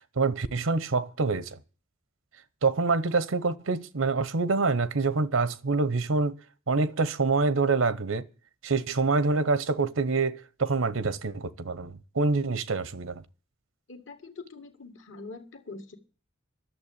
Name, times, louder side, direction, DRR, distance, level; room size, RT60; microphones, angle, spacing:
voice 1, 0.2-1.6 2.6-6.3 6.7-8.2 8.6-13.2, right 3 dB, 85° right, 0.8 m, -26 dB
voice 2, 13.9-16.0, left 3 dB, 70° left, 1.9 m, -44 dB
11.0 x 7.1 x 8.6 m
head